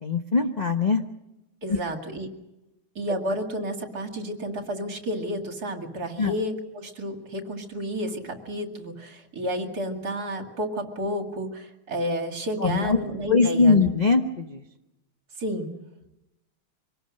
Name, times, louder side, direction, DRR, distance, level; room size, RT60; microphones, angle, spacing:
voice 1, 0.0-1.0 1.7-1.8 6.2-6.3 12.6-13.0 13.3-14.6, left 4 dB, 35° left, 5 dB, 0.6 m, -21 dB
voice 2, 1.6-2.3 2.9-13.8 15.4-15.7, equal, 45° right, 4 dB, 2.8 m, -31 dB
25.0 x 19.0 x 6.5 m, 0.93 s
omnidirectional pair, 2.3 m